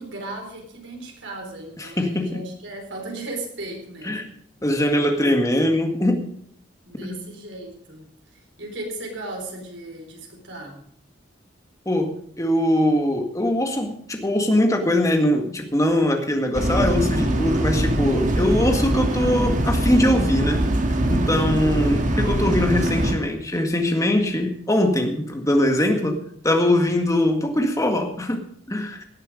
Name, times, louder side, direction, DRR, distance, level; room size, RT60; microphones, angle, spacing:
voice 1, 0.0-4.3 6.8-8.1 8.6-10.8, right 2 dB, 80° right, 2 dB, 4.1 m, -36 dB
voice 2, 1.8-2.4 4.0-4.3 4.6-6.2 7.0-7.2 11.9-20.6 21.1-29.0, left 1 dB, 20° left, 4 dB, 1.8 m, -22 dB
sound 1, 16.5-23.2, right 1 dB, 45° right, 1.6 m, -22 dB
17.5 x 9.2 x 5.0 m, 0.64 s
head